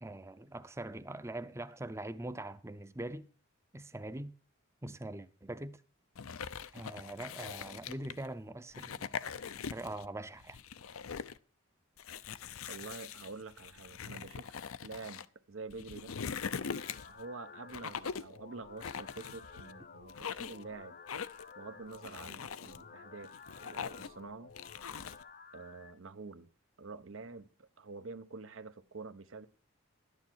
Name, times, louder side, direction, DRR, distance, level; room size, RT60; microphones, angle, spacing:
voice 1, 0.0-3.3 3.7-4.3 4.8-5.8 6.7-9.1 9.7-10.6, right 1 dB, 15° right, 0.6 m, -42 dB
sound 1, 6.1-8.3 8.7-10.1 10.4-11.4 12.0-15.2 15.7-17.2 17.7-18.4 18.8-19.7 20.1-20.6 21.1-21.5 21.9-22.8 23.2-24.2 24.6-25.2, left 6 dB, 90° left, 0.6 m, -42 dB
voice 2, 12.7-14.5 14.8-16.2 17.0-21.0 21.6-23.3 23.6-24.5 25.5-26.5 26.8-29.5, right 4 dB, 75° right, 0.9 m, -47 dB
sound 2, 15.9-25.9, left 5 dB, 40° left, 0.7 m, -53 dB
12.0 x 9.7 x 4.5 m
head